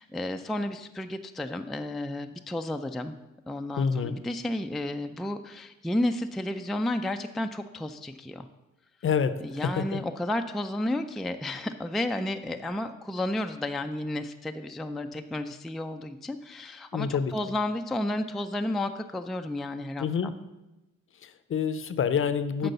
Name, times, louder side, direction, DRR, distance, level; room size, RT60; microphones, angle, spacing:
voice 1, 0.0-3.1 3.5-8.5 9.4-20.3 22.6-22.7, left 1 dB, ahead, 6 dB, 0.3 m, -32 dB
voice 2, 3.8-4.2 9.0-10.0 16.9-17.3 20.0-20.4 21.2-22.7, left 6 dB, 45° left, 12 dB, 0.6 m, -27 dB
8.1 x 4.5 x 6.6 m, 1.0 s
cardioid pair, 90°, 30 cm